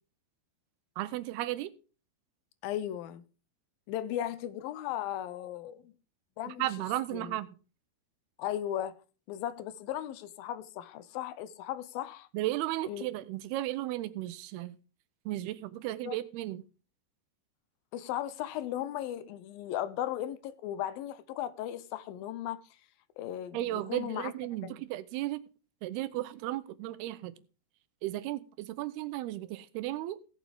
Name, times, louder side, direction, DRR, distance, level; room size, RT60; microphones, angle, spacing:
voice 1, 1.0-1.7 6.5-7.5 12.3-14.8 15.3-16.6 23.5-25.4 25.8-27.3 28.0-30.2, right 15 dB, 85° right, 2.8 m, -35 dB
voice 2, 2.6-3.2 3.9-5.9 6.4-6.7 7.1-7.4 8.4-9.0 9.3-12.3 12.9-13.1 16.1-16.2 17.9-22.8 23.2-24.3 24.6-24.7, left 11 dB, 80° left, 2.3 m, -36 dB
17.5 x 7.4 x 3.5 m
omnidirectional pair, 4.4 m